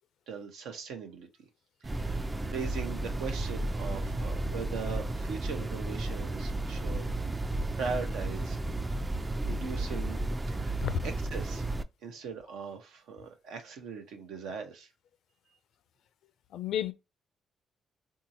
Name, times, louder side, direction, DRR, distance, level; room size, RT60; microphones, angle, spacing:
voice 1, 0.3-1.3 1.8-7.1 7.8-8.6 9.4-10.2 10.5-10.7 11.0-11.7 12.0-14.9, right 5 dB, 85° right, 0.9 m, -40 dB
sound 1, 1.8-11.8, right 2 dB, 20° right, 0.3 m, -33 dB
voice 2, 16.5-16.9, left 10 dB, 75° left, 0.4 m, -31 dB
3.7 x 2.8 x 2.7 m
cardioid pair, 90°, 0 cm